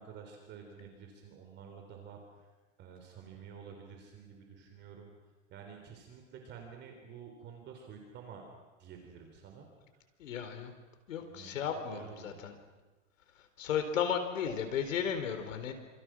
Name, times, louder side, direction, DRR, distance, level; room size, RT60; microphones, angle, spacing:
voice 1, 0.0-2.5 2.8-5.1 5.5-8.4 8.8-9.7 11.3-12.4, right 7 dB, 30° right, 3 dB, 3.7 m, -50 dB
voice 2, 10.2-10.7 11.1-12.5 13.6-15.7, left 8 dB, 85° left, 7 dB, 4.3 m, -34 dB
27.0 x 27.0 x 6.3 m, 1.2 s
supercardioid pair, 155°, 38 cm